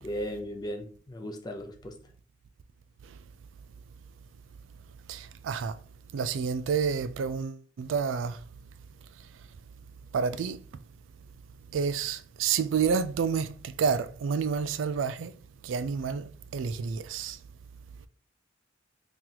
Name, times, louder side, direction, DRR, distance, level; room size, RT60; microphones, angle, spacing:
voice 1, 0.0-2.0, equal, 20° left, 0.5 m, -36 dB
voice 2, 5.1-5.8 6.1-8.4 10.1-10.6 11.7-15.3 15.6-17.4, right 6 dB, 85° right, 0.3 m, -29 dB
2.9 x 2.9 x 3.8 m
head